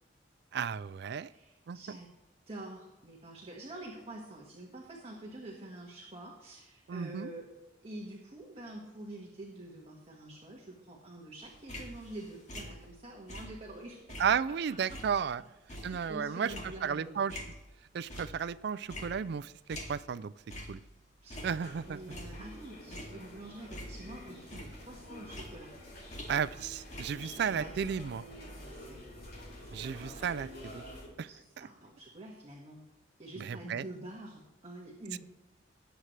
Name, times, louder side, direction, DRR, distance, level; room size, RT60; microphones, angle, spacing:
voice 1, 0.5-1.3 1.7-1.8 6.9-7.3 14.2-15.4 15.8-16.5 16.8-17.4 17.9-20.3 20.7-20.8 21.4-22.2 26.3-28.2 29.7-30.8 31.2-31.3 31.6-31.7 33.4-33.8 35.1-35.2, right 7 dB, 60° right, 17 dB, 0.3 m, -33 dB
voice 2, 1.2-2.1 2.5-7.5 7.8-14.2 14.9-15.0 15.3-15.4 15.7-17.2 21.2-21.6 21.8-25.7 27.2-27.7 28.1-30.2 31.2-32.8 33.2-35.2, right 1 dB, 35° right, -2 dB, 1.7 m, -47 dB
sound 1, 11.4-13.8 14.1-17.7 18.1-18.6 18.9-20.2 20.5-20.8 21.2-22.5 22.9-24.2 24.5-26.6 26.9-27.1, left 1 dB, 40° left, 2.4 m, -46 dB
sound 2, 21.6-31.1, equal, 55° left, 4.6 m, -48 dB
19.0 x 7.9 x 3.3 m, 1.0 s
head